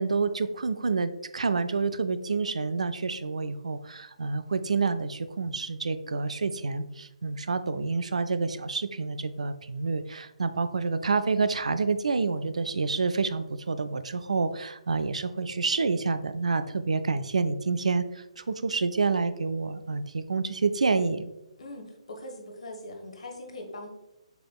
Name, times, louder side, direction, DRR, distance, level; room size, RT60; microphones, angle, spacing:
voice 1, 0.0-21.3, right 4 dB, 70° right, 11 dB, 0.4 m, -28 dB
voice 2, 21.6-23.9, left 1 dB, 65° left, 3 dB, 1.2 m, -41 dB
6.8 x 3.4 x 2.3 m, 0.93 s
figure-of-eight pair, 140°, 4 cm